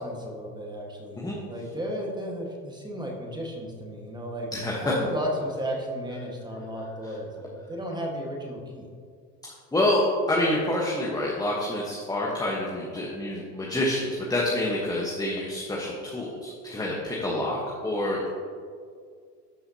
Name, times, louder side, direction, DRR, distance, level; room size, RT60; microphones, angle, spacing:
voice 1, 0.0-4.5 4.8-8.9, equal, 10° right, 0 dB, 1.5 m, -34 dB
voice 2, 4.5-4.9 7.0-7.1 9.7-18.3, left 1 dB, 10° left, -4 dB, 1.1 m, -27 dB
12.0 x 5.6 x 2.8 m, 2.1 s
hypercardioid pair, 95°, 49 cm